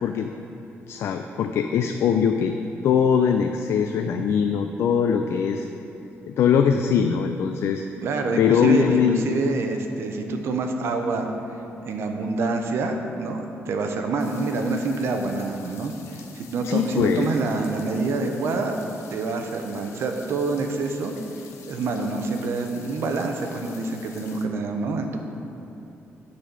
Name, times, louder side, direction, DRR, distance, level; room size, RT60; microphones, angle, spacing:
voice 1, 0.0-0.3 0.9-2.5 2.8-5.7 6.3-7.8 8.4-9.2 16.6-17.3, left 7 dB, 65° left, 6 dB, 0.3 m, -21 dB
voice 2, 8.0-11.3 11.8-18.8 19.1-21.1 21.7-25.2, right 3 dB, 60° right, 4 dB, 0.7 m, -27 dB
sound 1, 14.2-24.5, left 6 dB, 85° left, 0.8 m, -48 dB
9.7 x 4.1 x 5.9 m, 2.9 s
cardioid pair, 165°, 5 cm